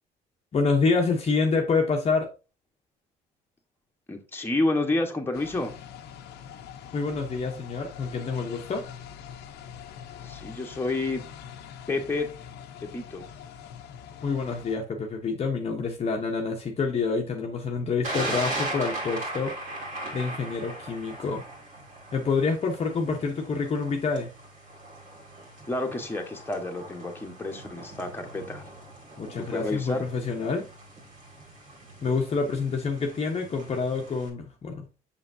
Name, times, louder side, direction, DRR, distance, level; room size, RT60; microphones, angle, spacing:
voice 1, 0.5-2.3 6.9-8.8 14.2-19.5 20.1-21.4 22.1-24.3 29.2-30.7 32.0-34.9, left 4 dB, 35° left, 0.9 m, -27 dB
voice 2, 4.1-5.7 10.2-11.3 11.9-12.3 12.8-13.3 25.7-28.7 29.4-30.0, left 2 dB, 15° left, 1.3 m, -29 dB
sound 1, 5.3-14.8, left 8 dB, 80° left, 0.9 m, -44 dB
Thunder, 18.0-34.3, right 1 dB, 55° right, 2.5 m, -39 dB
6.3 x 5.7 x 2.7 m
cardioid pair, 110°, 17 cm